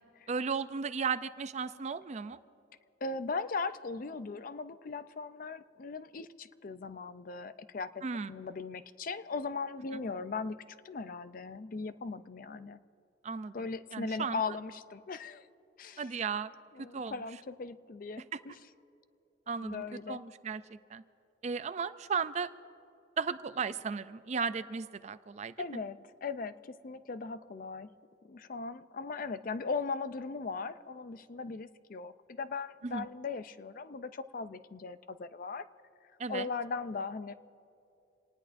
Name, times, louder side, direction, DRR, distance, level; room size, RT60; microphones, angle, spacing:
voice 1, 0.3-2.4 8.0-8.3 13.2-13.5 13.9-14.4 16.0-16.5 16.9-17.1 18.3-18.4 19.5-21.0 21.4-22.5 23.2-25.5 32.8-33.1 36.2-36.5, right 5 dB, 35° right, 13 dB, 0.4 m, -35 dB
voice 2, 3.0-10.6 10.8-12.8 13.5-15.5 15.8-16.1 16.7-18.6 19.6-20.2 25.6-27.9 28.2-35.7 36.3-37.3, left 4 dB, 45° left, 13 dB, 0.5 m, -38 dB
27.0 x 19.0 x 2.6 m, 2.8 s
head